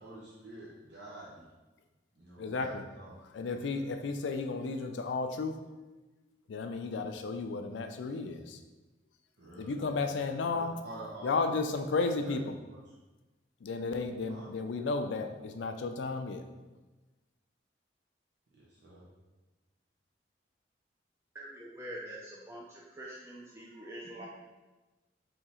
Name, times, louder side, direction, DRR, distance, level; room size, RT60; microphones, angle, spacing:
voice 1, 0.0-1.4 2.2-3.1 9.4-9.7 10.4-11.3 12.2-12.3 14.3-14.5 18.6-19.0, right 1 dB, 70° right, -7 dB, 0.9 m, -48 dB
voice 2, 2.4-2.8 3.3-5.6 6.5-8.6 9.6-10.8 11.2-12.6 13.6-16.4, left 3 dB, 85° left, 7 dB, 0.4 m, -33 dB
voice 3, 21.3-24.3, right 1 dB, 15° right, -5 dB, 0.4 m, -45 dB
3.6 x 2.8 x 4.2 m, 1.2 s
head